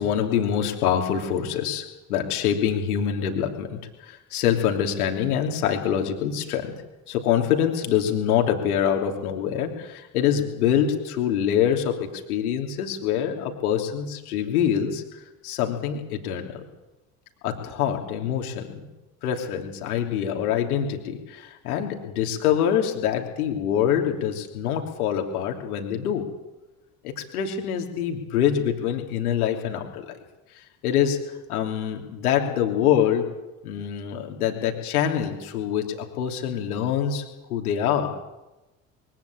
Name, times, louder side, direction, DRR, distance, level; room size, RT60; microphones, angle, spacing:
voice 1, 0.0-6.7 7.1-15.0 15.4-16.6 17.4-18.9 19.2-26.3 27.0-30.2 30.6-33.3 33.6-37.2 37.5-38.2, left 9 dB, 70° left, 3 dB, 3.1 m, -25 dB
22.5 x 15.0 x 8.8 m, 1.0 s
figure-of-eight pair, 55°, 46 cm